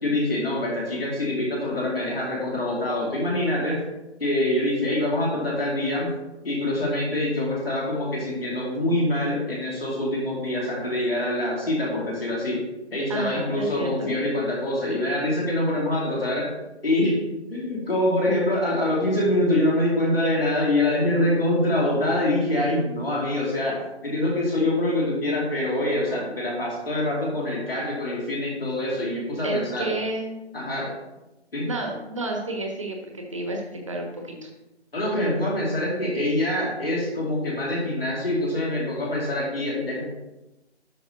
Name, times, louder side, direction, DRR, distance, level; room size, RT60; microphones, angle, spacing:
voice 1, 0.0-3.8 4.2-6.1 6.4-12.6 12.9-16.5 16.8-17.2 17.5-29.9 30.5-30.9 31.5-31.7 34.9-40.1, left 1 dB, 55° left, -4 dB, 2.6 m, -25 dB
voice 2, 13.1-14.1 29.4-30.3 31.6-34.5, right 2 dB, 25° right, 1 dB, 1.2 m, -30 dB
12.5 x 5.3 x 2.9 m, 1.0 s
figure-of-eight pair, 155°, 35 cm